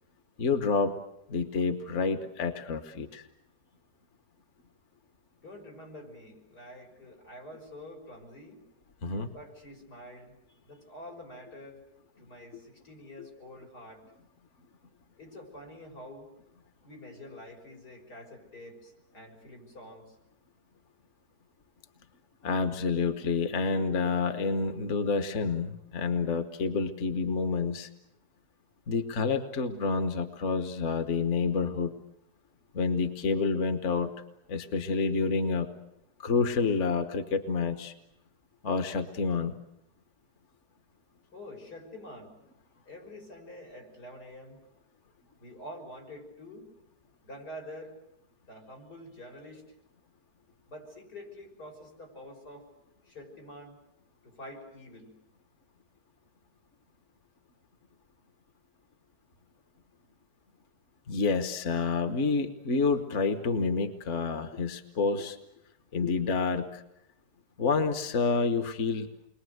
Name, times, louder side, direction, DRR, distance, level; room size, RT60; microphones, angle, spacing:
voice 1, 0.4-0.9 1.3-3.2 9.0-9.3 22.4-27.9 28.9-31.9 32.7-34.1 34.5-35.7 36.2-37.9 38.6-39.5 61.1-65.4 65.9-66.8 67.6-69.1, left 4 dB, 50° left, 8 dB, 1.5 m, -28 dB
voice 2, 5.4-8.6 9.3-11.8 12.2-14.0 15.2-16.3 16.8-20.2 41.3-42.4 42.8-44.6 45.4-46.7 47.2-48.0 48.5-49.6 50.7-52.7 53.0-53.8 54.2-55.2, left 1 dB, 85° left, 1 dB, 6.7 m, -47 dB
29.5 x 22.5 x 8.0 m, 0.82 s
omnidirectional pair, 1.7 m